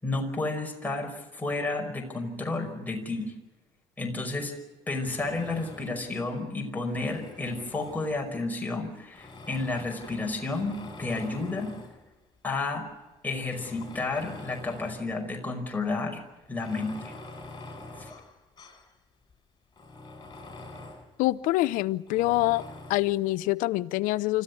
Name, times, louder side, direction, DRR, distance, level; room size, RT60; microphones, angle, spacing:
voice 1, 0.0-3.3 4.0-4.5 4.9-11.7 12.4-12.8 13.2-16.2 16.5-17.1 18.0-18.1, left 3 dB, 10° left, 2 dB, 5.4 m, -31 dB
Tools, 5.0-6.1 6.8-8.4 9.1-12.0 12.7-12.8 13.4-15.1 15.5-15.6 16.4-18.9 19.3-19.4 19.7-21.1 22.1-23.1, left 2 dB, 30° left, 7.1 m, -45 dB
voice 2, 21.2-22.6 22.9-24.4, left 18 dB, 75° left, 19 dB, 0.7 m, -25 dB
25.5 x 14.5 x 9.7 m, 1.2 s
supercardioid pair, 70°, 14 cm